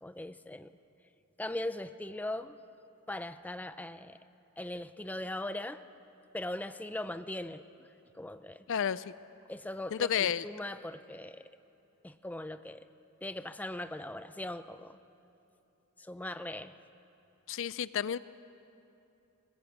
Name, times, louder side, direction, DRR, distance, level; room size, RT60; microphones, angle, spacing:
voice 1, 0.0-0.7 1.4-2.6 3.1-4.2 4.6-5.8 6.3-7.9 8.1-8.7 9.5-11.5 12.0-12.9 13.2-15.0 16.0-16.8, left 1 dB, 5° left, 11 dB, 0.5 m, -40 dB
voice 2, 8.7-9.1 9.9-10.5 17.5-18.2, left 8 dB, 60° left, 17 dB, 0.4 m, -31 dB
21.0 x 20.0 x 8.6 m, 2.8 s
head